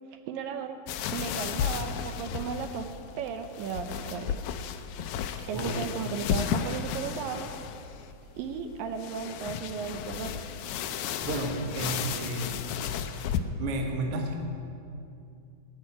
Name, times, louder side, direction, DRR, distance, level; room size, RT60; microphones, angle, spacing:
voice 1, 0.1-0.8 1.1-2.9 3.2-4.4 5.5-7.5 8.4-10.3, right 7 dB, 80° right, 7 dB, 2.5 m, -35 dB
sound 1, 0.9-13.4, left 8 dB, 80° left, 1.7 m, -34 dB
voice 2, 11.2-12.5 13.2-14.4, right 2 dB, 55° right, 3 dB, 1.8 m, -32 dB
18.5 x 6.7 x 9.8 m, 2.5 s
omnidirectional pair, 4.1 m